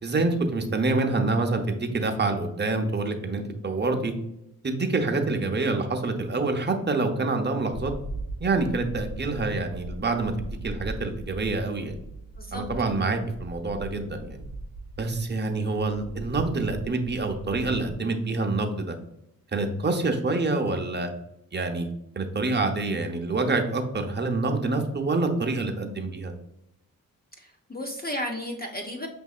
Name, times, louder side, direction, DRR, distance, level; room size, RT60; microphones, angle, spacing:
voice 1, 0.0-4.1 4.6-7.9 8.4-12.0 12.5-14.4 15.0-18.9 19.5-21.1 21.5-21.9 22.2-26.3, right 3 dB, 30° right, 5 dB, 0.7 m, -26 dB
sound 1, 7.7-17.9, right 2 dB, 70° right, 0.8 m, -39 dB
voice 2, 27.4-29.1, left 1 dB, 25° left, 2 dB, 0.6 m, -33 dB
6.0 x 2.7 x 2.4 m, 0.81 s
cardioid pair, 65°, 37 cm